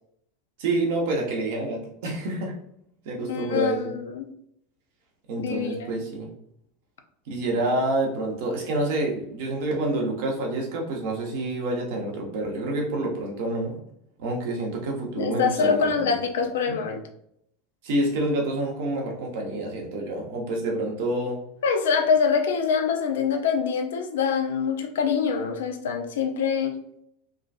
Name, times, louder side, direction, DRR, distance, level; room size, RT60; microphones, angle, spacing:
voice 1, 0.6-2.6 3.0-3.9 5.3-6.3 7.3-13.8 14.2-16.2 16.7-16.8 17.8-21.4, right 2 dB, 65° right, 0 dB, 1.0 m, -28 dB
voice 2, 3.3-4.3 5.4-5.9 15.2-17.0 21.6-26.8, left 6 dB, 75° left, 6 dB, 0.5 m, -25 dB
3.7 x 2.4 x 2.4 m, 0.73 s
hypercardioid pair, 90°, 0 cm